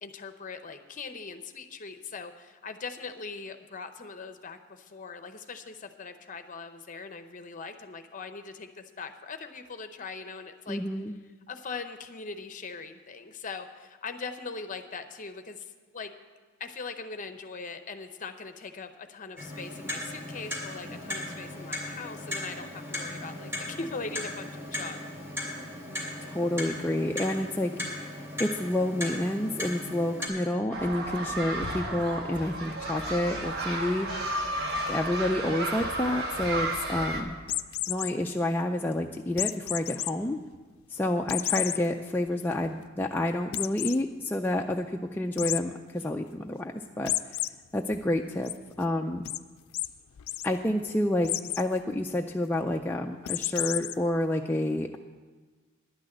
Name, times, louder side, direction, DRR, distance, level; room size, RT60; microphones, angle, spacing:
voice 1, 0.0-10.8 11.5-16.1 16.6-25.0, left 4 dB, 40° left, 8 dB, 0.7 m, -41 dB
voice 2, 10.7-11.1 26.2-27.7 28.4-34.1 34.9-37.4 37.9-40.4 40.9-47.1 47.7-48.5 48.8-49.2 50.4-51.3 51.6-55.0, left 1 dB, 10° left, 1 dB, 0.3 m, -29 dB
Clock, 19.4-30.3, left 1 dB, 10° right, 3.1 m, -37 dB
sound 1, 30.7-37.2, right 1 dB, 50° right, 1.4 m, -32 dB
sound 2, 37.4-38.1 39.4-40.1 40.5-40.6 41.3-41.8 42.3-42.4 42.7-42.8 43.5-44.0 45.4-45.6 47.1-47.5 47.9-48.5 49.3-49.4 49.7-49.9 50.2-50.5 51.2-51.6 53.3-53.9, left 15 dB, 80° left, 0.4 m, -30 dB
11.0 x 6.2 x 8.8 m, 1.4 s
head